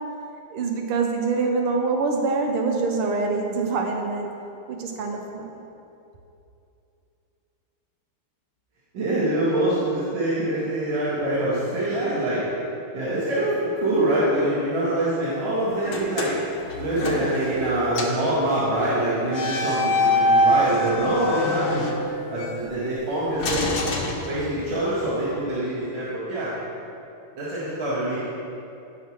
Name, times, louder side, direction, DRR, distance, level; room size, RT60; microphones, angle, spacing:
voice 1, 0.5-4.3 4.7-5.4, right 4 dB, 80° right, 2 dB, 1.7 m, -25 dB
voice 2, 8.9-12.4 12.9-16.3 16.8-21.9 22.3-26.5 27.4-28.2, right 1 dB, 65° right, -11 dB, 2.6 m, -25 dB
sound 1, 15.8-17.7 17.9-18.3 19.3-22.5 23.4-24.8, left 1 dB, 55° left, 1.3 m, -24 dB
17.0 x 5.8 x 3.2 m, 2.8 s
omnidirectional pair, 2.4 m